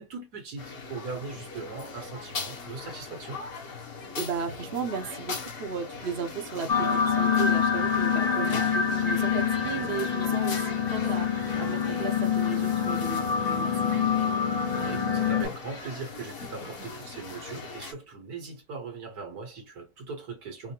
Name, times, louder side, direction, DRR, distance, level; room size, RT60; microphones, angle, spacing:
voice 1, 0.0-3.4 14.8-20.7, right 4 dB, 75° right, 2.0 m, -40 dB
sound 1, 0.6-17.9, left 4 dB, 55° left, 1.6 m, -39 dB
voice 2, 4.2-13.7, right 6 dB, 45° right, 1.0 m, -35 dB
sound 2, 6.7-15.4, left 7 dB, 30° left, 0.8 m, -26 dB
5.0 x 2.2 x 2.9 m
omnidirectional pair, 1.7 m